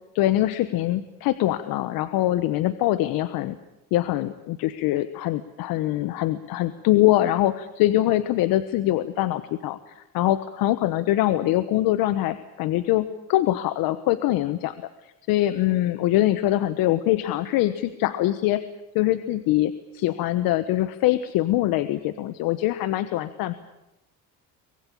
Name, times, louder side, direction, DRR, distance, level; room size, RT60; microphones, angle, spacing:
voice 1, 0.1-3.6 3.9-14.7 15.0-18.6 18.9-23.5, left 14 dB, 80° left, 13 dB, 1.2 m, -23 dB
24.0 x 20.5 x 8.7 m, 0.93 s
cardioid pair, 110°, 35 cm